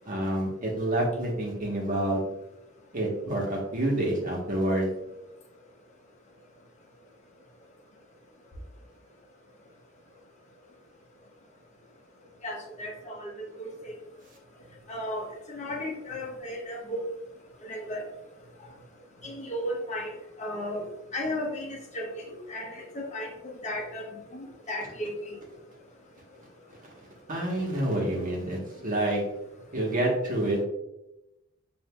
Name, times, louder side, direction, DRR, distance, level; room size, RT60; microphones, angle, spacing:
voice 1, 0.0-2.2 2.9-4.9 27.3-29.2 29.7-30.6, right 1 dB, 40° right, -2 dB, 1.1 m, -28 dB
voice 2, 12.4-13.3 13.8-13.9 14.9-17.0 17.7-18.0 19.2-20.1 20.4-20.8 21.1-24.1 24.3-25.4, left 1 dB, 35° left, 0 dB, 0.8 m, -35 dB
7.0 x 2.6 x 2.3 m, 0.92 s
head